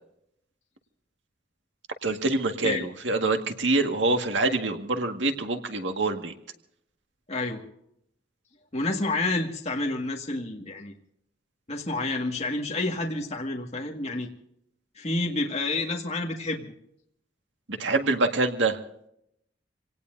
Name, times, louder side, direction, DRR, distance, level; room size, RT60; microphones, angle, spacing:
voice 1, 2.0-6.3 17.7-18.8, right 2 dB, 75° right, 5 dB, 1.9 m, -25 dB
voice 2, 7.3-7.6 8.7-10.9 11.7-14.3 14.9-16.7, left 2 dB, 35° left, 0 dB, 1.9 m, -29 dB
27.0 x 18.5 x 2.7 m, 0.73 s
head